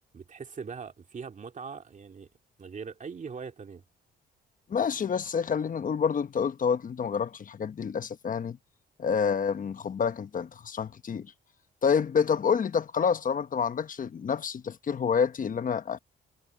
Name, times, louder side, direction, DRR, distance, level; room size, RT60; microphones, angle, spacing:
voice 1, 0.1-2.3 2.6-3.8, right 5 dB, 40° right, 2.5 m, -41 dB
voice 2, 4.7-8.6 9.0-11.3 11.8-16.0, left 6 dB, 40° left, 1.2 m, -28 dB
cardioid pair, 90°, 20 cm